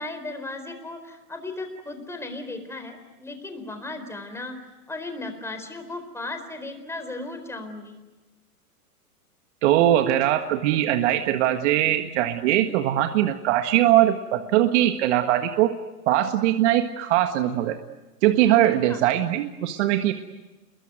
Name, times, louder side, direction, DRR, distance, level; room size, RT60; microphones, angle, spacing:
voice 1, 0.0-4.5 4.9-8.0 18.9-19.0, left 2 dB, 5° left, 7 dB, 4.2 m, -36 dB
voice 2, 9.6-15.7 16.1-17.8 18.2-20.1, right 13 dB, 50° right, 6 dB, 1.7 m, -21 dB
28.0 x 22.5 x 9.4 m, 1.1 s
hypercardioid pair, 130°, 46 cm